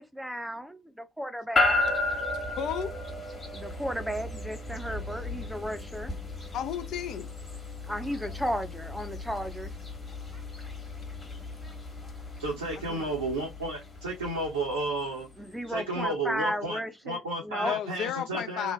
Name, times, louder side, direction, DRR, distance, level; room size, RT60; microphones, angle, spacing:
voice 1, 0.0-1.8 3.5-6.1 7.9-9.7 15.4-17.7, equal, ahead, 0.5 m, -34 dB
sound 1, 1.6-15.8, left 2 dB, 30° left, 1.3 m, -34 dB
voice 2, 2.5-3.0 6.5-7.3 12.9-13.1 17.6-18.7, left 9 dB, 55° left, 0.4 m, -33 dB
voice 3, 12.4-15.3 15.7-16.8 17.0-18.7, right 2 dB, 80° right, 0.8 m, -32 dB
3.1 x 2.2 x 3.1 m
figure-of-eight pair, 50°, 0 cm